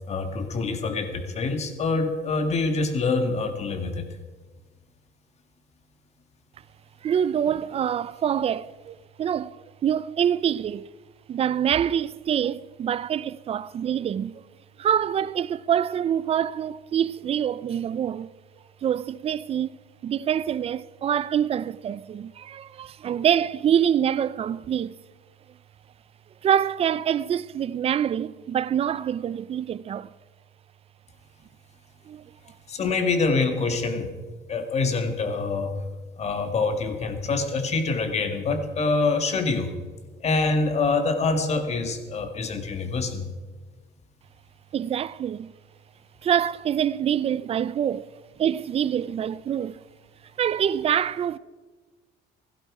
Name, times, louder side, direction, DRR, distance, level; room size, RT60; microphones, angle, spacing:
voice 1, 0.1-4.1 32.7-34.1 34.5-35.7 36.2-39.7 40.2-43.3, left 3 dB, 40° left, 1.9 m, -25 dB
voice 2, 7.0-10.9 11.3-14.4 14.8-18.3 18.8-19.7 20.0-25.0 26.4-30.1 32.1-32.3 44.7-45.5 46.2-48.1 48.4-49.8 50.4-51.4, right 9 dB, 35° right, 0.4 m, -25 dB
17.0 x 15.5 x 4.9 m
cardioid pair, 140°, 18 cm